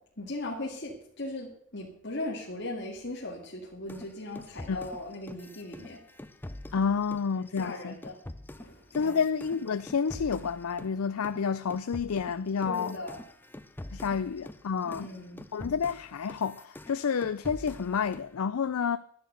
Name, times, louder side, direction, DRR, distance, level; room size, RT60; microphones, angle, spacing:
voice 1, 0.2-6.0 7.4-8.2 8.6-9.2 12.7-13.2 14.8-15.4, left 2 dB, 50° left, 2.1 m, -38 dB
sound 1, 3.9-11.0 11.2-18.3, left 1 dB, 10° left, 0.5 m, -45 dB
voice 2, 6.7-7.9 8.9-13.0 13.9-15.1 15.5-19.0, left 6 dB, 75° left, 0.5 m, -29 dB
11.5 x 10.0 x 6.8 m
head